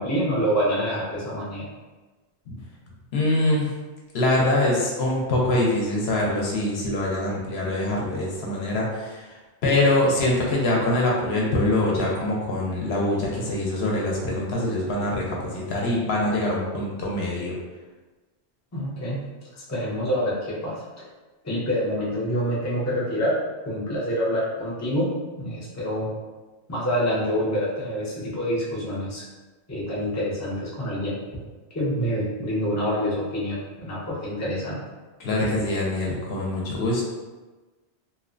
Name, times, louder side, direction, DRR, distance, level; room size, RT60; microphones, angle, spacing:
voice 1, 0.0-1.7 18.7-19.3 19.7-20.8 21.4-23.3 23.7-25.1 25.4-26.1 26.7-29.2 29.7-31.2 31.7-34.8, equal, 20° left, -7 dB, 0.5 m, -26 dB
voice 2, 3.1-3.7 4.1-9.4 9.6-17.5 35.2-37.0, left 1 dB, 70° left, -3 dB, 0.8 m, -24 dB
2.8 x 2.1 x 2.5 m, 1.2 s
omnidirectional pair, 1.2 m